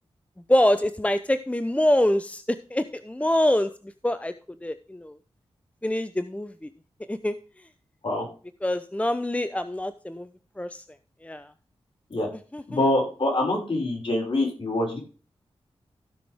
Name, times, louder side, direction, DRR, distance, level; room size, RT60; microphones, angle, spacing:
voice 1, 0.5-3.7 4.0-4.3 4.6-5.1 5.8-6.7 7.1-7.4 8.6-10.3 10.6-10.8 11.2-11.5 12.5-12.6, left 1 dB, 10° left, 11 dB, 0.8 m, -25 dB
voice 2, 12.7-15.0, left 1 dB, 55° left, -1 dB, 5.6 m, -25 dB
15.5 x 6.0 x 3.6 m, 0.36 s
cardioid pair, 45°, 11 cm